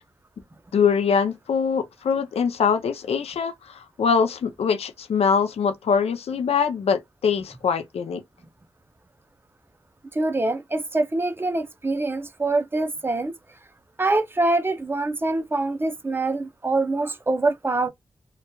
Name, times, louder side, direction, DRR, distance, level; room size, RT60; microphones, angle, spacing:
voice 1, 0.7-8.2, left 6 dB, 70° left, 0.4 m, -23 dB
voice 2, 10.1-13.3 14.0-17.9, right 2 dB, 20° right, 0.5 m, -24 dB
2.8 x 2.2 x 2.2 m
wide cardioid pair, 85°, 11 cm